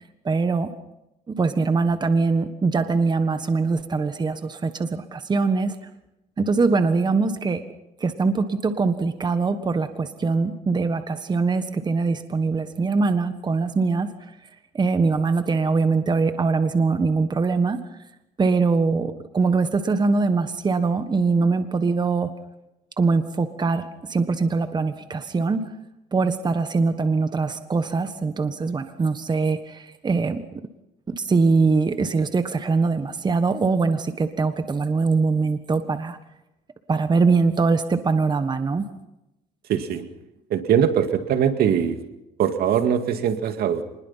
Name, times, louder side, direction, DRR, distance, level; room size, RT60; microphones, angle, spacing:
voice 1, 0.2-0.7 1.3-5.7 6.4-7.6 8.0-14.1 14.7-17.8 18.4-22.3 23.0-25.7 26.1-30.4 31.1-36.2 36.9-38.8, right 4 dB, 25° right, 9 dB, 1.4 m, -22 dB
voice 2, 39.7-40.1 40.5-42.0 42.4-43.8, right 8 dB, 65° right, 8 dB, 2.2 m, -21 dB
26.5 x 20.5 x 5.7 m, 0.92 s
cardioid pair, 110°, 17 cm